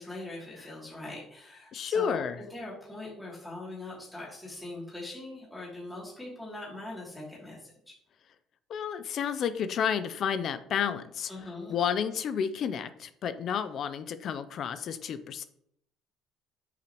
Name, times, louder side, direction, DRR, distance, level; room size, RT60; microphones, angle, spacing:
voice 1, 0.0-2.2 2.5-7.7 11.3-11.7, left 2 dB, 10° left, -6 dB, 2.9 m, -41 dB
voice 2, 1.7-2.4 8.7-11.3 11.7-15.4, left 7 dB, 55° left, 12 dB, 0.6 m, -31 dB
8.0 x 5.8 x 3.1 m, 0.68 s
cardioid pair, 95°, 0 cm